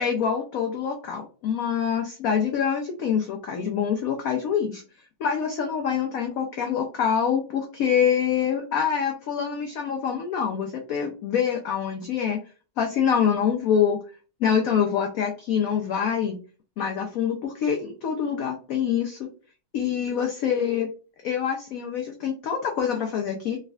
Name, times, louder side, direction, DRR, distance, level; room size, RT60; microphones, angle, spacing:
voice 1, 0.0-4.8 5.2-12.4 12.8-14.0 14.4-16.4 16.8-19.3 19.7-20.9 21.2-23.6, left 7 dB, 80° left, 2 dB, 0.7 m, -25 dB
3.4 x 3.2 x 2.3 m, 0.35 s
omnidirectional pair, 2.1 m